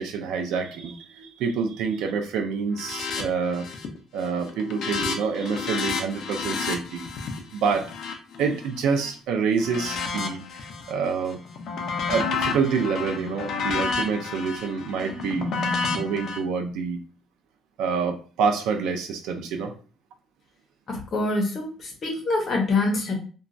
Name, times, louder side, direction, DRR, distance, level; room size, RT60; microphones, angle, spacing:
voice 1, 0.0-3.7 4.1-7.1 7.5-7.9 8.4-11.4 12.1-15.5 15.9-17.0 17.8-19.7, right 5 dB, 80° right, 4 dB, 0.4 m, -27 dB
sound 1, 2.7-3.2 3.5-4.0 4.3-9.1 9.6-10.9 11.3-16.4, left 4 dB, 55° left, 0.5 m, -30 dB
voice 2, 20.9-23.2, left 2 dB, 35° left, 1 dB, 0.8 m, -25 dB
2.9 x 2.3 x 2.5 m, 0.37 s
cardioid pair, 170°, 0 cm